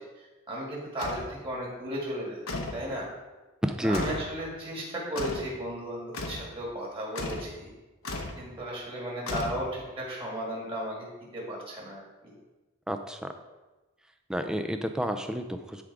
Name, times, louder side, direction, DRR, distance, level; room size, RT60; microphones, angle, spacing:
voice 1, 0.0-2.4 2.7-3.1 3.8-7.6 8.4-11.1 11.3-12.3, right 1 dB, 25° right, -4 dB, 2.0 m, -35 dB
sound 1, 1.0-1.3 2.5-2.9 3.9-4.3 5.2-5.5 6.1-6.5 7.2-7.5 8.0-8.4 9.3-9.9, left 2 dB, 85° left, 0.9 m, -35 dB
voice 2, 3.6-4.0 12.9-13.3 14.3-15.8, equal, 5° right, 6 dB, 0.4 m, -30 dB
11.0 x 3.7 x 4.7 m, 1.2 s
head